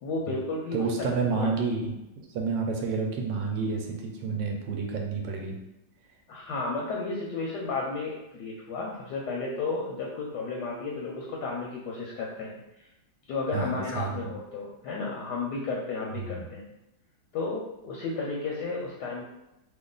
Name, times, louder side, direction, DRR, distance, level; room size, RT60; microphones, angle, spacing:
voice 1, 0.0-1.5 6.3-12.9 13.3-16.7 17.3-19.2, left 3 dB, 75° left, -3 dB, 1.1 m, -33 dB
voice 2, 0.7-5.6 13.5-14.3 16.1-16.4, right 4 dB, 75° right, 1 dB, 1.2 m, -30 dB
3.1 x 2.3 x 3.7 m, 0.92 s
omnidirectional pair, 2.1 m